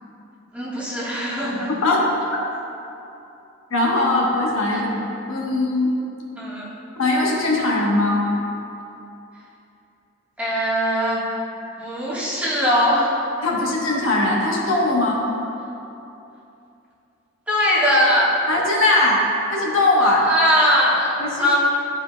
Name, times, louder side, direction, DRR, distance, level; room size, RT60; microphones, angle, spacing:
voice 1, 0.5-1.7 4.7-4.8 6.3-6.8 10.4-11.2 11.8-13.1 17.5-18.3 20.2-21.5, equal, 5° right, -9 dB, 1.3 m, -20 dB
voice 2, 1.7-2.0 2.3-2.4 3.7-5.0 5.3-5.9 7.0-8.2 13.4-15.2 18.5-20.3 21.2-21.5, left 2 dB, 75° left, -3 dB, 1.1 m, -20 dB
11.5 x 4.7 x 2.2 m, 2.8 s
head